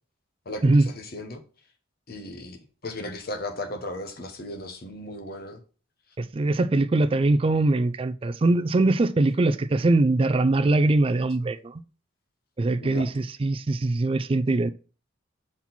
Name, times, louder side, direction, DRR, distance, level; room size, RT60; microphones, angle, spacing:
voice 1, 0.4-1.4 2.1-2.6 2.8-5.6 12.8-13.1, left 1 dB, 50° left, 1.0 m, -36 dB
voice 2, 6.2-11.8 12.6-14.7, right 2 dB, 25° right, 0.3 m, -22 dB
6.0 x 4.3 x 4.1 m
head